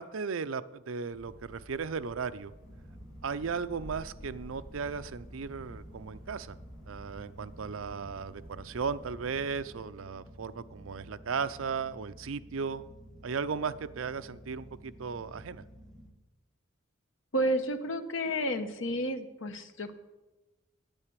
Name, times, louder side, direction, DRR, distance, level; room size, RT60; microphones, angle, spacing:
voice 1, 0.0-2.5 3.2-6.6 6.9-12.8 13.2-15.6, right 5 dB, 70° right, 13 dB, 0.5 m, -36 dB
sound 1, 1.1-9.7, equal, 40° left, 5.1 m, -51 dB
sound 2, 2.6-16.1, equal, ahead, 1.4 m, -51 dB
voice 2, 17.3-19.9, equal, 70° left, 8 dB, 1.1 m, -31 dB
9.7 x 9.0 x 8.2 m, 1.1 s
head